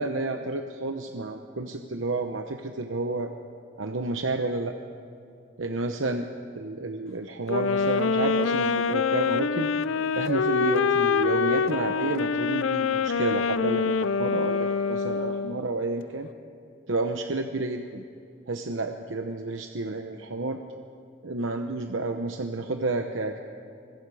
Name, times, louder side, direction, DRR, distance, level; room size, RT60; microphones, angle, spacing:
voice 1, 0.0-3.3 3.8-4.8 5.6-6.3 6.5-9.7 10.1-16.3 16.9-18.0 18.5-20.6 21.2-23.4, right 3 dB, 80° right, 5 dB, 1.0 m, -30 dB
sound 1, 7.5-15.7, left 5 dB, 90° left, 0.5 m, -25 dB
25.5 x 21.5 x 4.9 m, 2.5 s
head